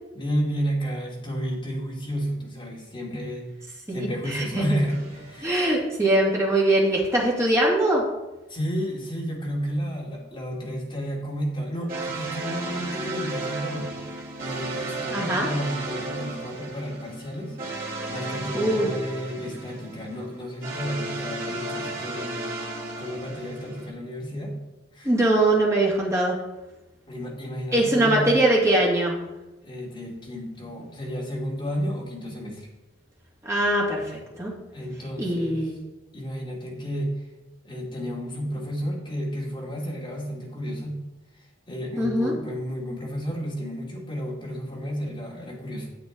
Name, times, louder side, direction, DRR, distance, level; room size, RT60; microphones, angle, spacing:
voice 1, 0.1-3.5 3.9-5.5 8.5-13.9 14.4-22.4 23.0-24.5 24.9-25.1 27.1-28.3 29.6-32.7 34.7-35.7 36.1-37.3 37.6-41.0 41.3-45.9, equal, 25° left, -4 dB, 2.3 m, -32 dB
voice 2, 3.9-4.6 5.4-8.0 15.1-15.5 18.5-18.9 25.0-26.4 27.7-29.2 33.4-34.5 35.2-35.7 42.0-42.3, right 1 dB, 15° right, -3 dB, 2.1 m, -22 dB
sound 1, 4.9-6.0 11.9-23.9, right 2 dB, 45° right, 2.6 m, -34 dB
9.5 x 7.9 x 3.8 m, 1.0 s
head